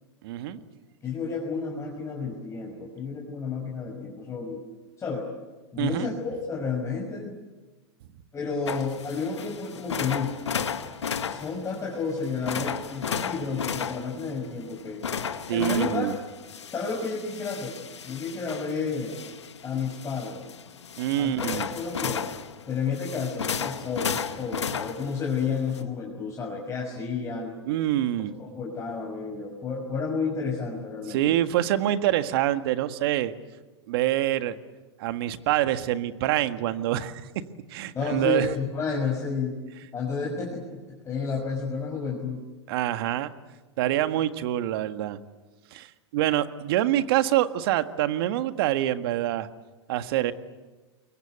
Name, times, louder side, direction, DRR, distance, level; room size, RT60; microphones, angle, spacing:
voice 1, 0.2-0.6 5.8-6.1 15.5-16.1 21.0-21.7 27.6-28.3 31.1-33.3 33.9-34.5 35.0-37.2 37.7-38.5 42.7-43.3 43.8-45.2 45.7-49.5 49.9-50.3, right 13 dB, 60° right, 10 dB, 1.7 m, -25 dB
voice 2, 1.0-4.6 5.0-5.3 5.7-7.3 8.3-10.4 11.2-15.0 15.5-16.1 16.6-17.8 18.0-19.2 19.6-20.4 21.2-22.3 22.7-27.6 28.4-31.2 37.9-39.5 39.9-42.4, left 5 dB, 20° left, -1 dB, 6.0 m, -31 dB
sound 1, 8.7-25.8, left 7 dB, 90° left, 1.8 m, -34 dB
27.5 x 23.0 x 8.2 m, 1.2 s
hypercardioid pair, 110°, 14 cm